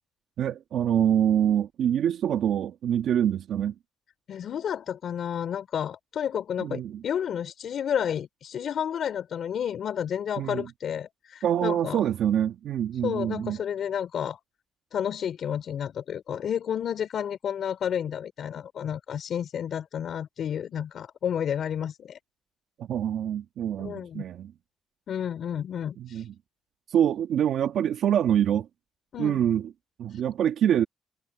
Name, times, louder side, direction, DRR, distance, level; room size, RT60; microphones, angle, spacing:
voice 1, 0.4-3.7 6.6-7.0 10.4-10.6 11.4-13.6 22.8-24.5 26.0-26.3 26.9-28.7 29.2-29.6 30.0-30.8, right 10 dB, 70° right, 1.4 m, -25 dB
voice 2, 4.3-12.1 13.0-14.4 14.9-22.2 23.8-24.2 25.1-26.2 29.1-29.4 30.1-30.2, left 9 dB, 65° left, 3.8 m, -31 dB
cardioid pair, 90°, 0 cm